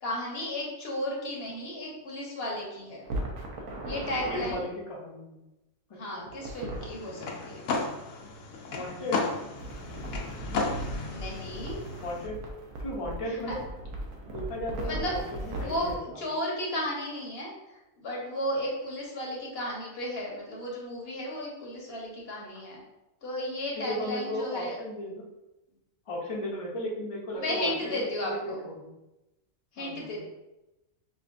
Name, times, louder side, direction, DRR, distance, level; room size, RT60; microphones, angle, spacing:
voice 1, 0.0-3.0 3.9-4.7 5.9-7.7 11.1-11.8 13.3-13.5 14.8-22.8 23.2-24.8 27.4-28.6 29.7-30.3, left 1 dB, 55° left, -2 dB, 0.9 m, -34 dB
sound 1, 3.0-4.5 6.3-6.9 9.6-16.0, right 1 dB, 75° right, 1.1 m, -38 dB
voice 2, 4.3-5.4 6.1-6.2 8.7-9.2 12.0-12.4 12.8-13.6 14.3-16.2 23.8-25.2 26.1-28.9 29.8-30.2, left 1 dB, 35° left, -3 dB, 0.5 m, -35 dB
sound 2, 6.8-12.3, left 3 dB, 90° left, 1.0 m, -34 dB
5.0 x 2.2 x 2.5 m, 0.97 s
omnidirectional pair, 1.4 m